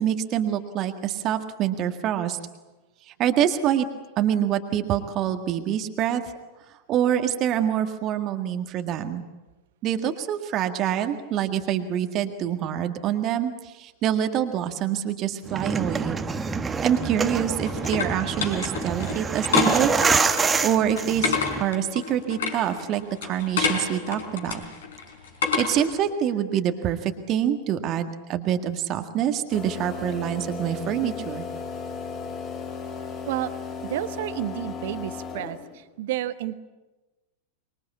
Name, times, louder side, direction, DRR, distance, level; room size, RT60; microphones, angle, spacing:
voice 1, 0.0-2.4 3.2-3.9 4.2-6.2 6.9-9.2 9.8-16.2 16.8-19.9 20.3-24.6 25.6-31.5, right 10 dB, 35° right, 7 dB, 1.8 m, -26 dB
sound 1, 15.5-21.6, right 5 dB, 15° right, 1.4 m, -26 dB
sound 2, 17.0-26.0, left 6 dB, 60° left, 4.2 m, -29 dB
sound 3, 29.5-35.8, left 5 dB, 35° left, 3.3 m, -35 dB
voice 2, 33.8-36.6, right 14 dB, 55° right, 13 dB, 1.2 m, -31 dB
25.0 x 23.0 x 8.4 m, 1.2 s
figure-of-eight pair, 90°, 0 cm